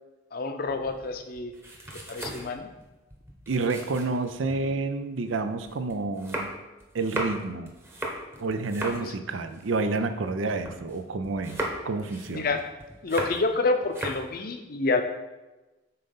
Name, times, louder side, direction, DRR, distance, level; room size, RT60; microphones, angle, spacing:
voice 1, 0.3-1.5 2.1-2.7 9.0-9.1 12.3-12.6 13.0-15.0, left 3 dB, 50° left, 7 dB, 0.6 m, -28 dB
sound 1, 0.7-4.7 5.2-11.0 11.2-13.6 13.8-14.3, right 1 dB, 15° right, 0.9 m, -37 dB
voice 2, 3.5-6.5 6.9-7.7 8.4-12.6, right 3 dB, 90° right, 9 dB, 0.5 m, -29 dB
5.6 x 3.9 x 5.4 m, 1.1 s
head